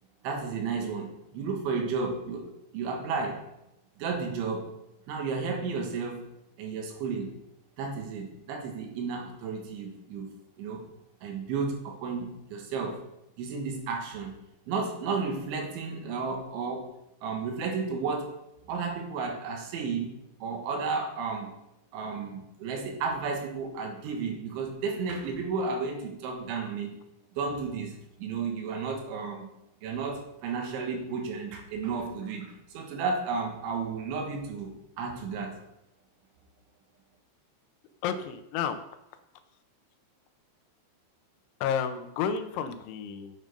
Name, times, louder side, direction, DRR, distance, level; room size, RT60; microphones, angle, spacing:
voice 1, 0.2-3.4 4.0-4.7 5.1-6.3 6.6-7.3 7.8-10.3 10.6-10.8 11.2-13.0 13.4-14.3 14.7-16.9 17.2-18.3 18.7-21.5 21.9-26.9 27.4-29.5 29.8-35.6, right 4 dB, 75° right, 3 dB, 3.8 m, -33 dB
voice 2, 38.0-38.8 41.6-43.3, left 7 dB, 80° left, 8 dB, 3.1 m, -31 dB
11.5 x 7.3 x 5.3 m, 0.85 s
omnidirectional pair, 5.5 m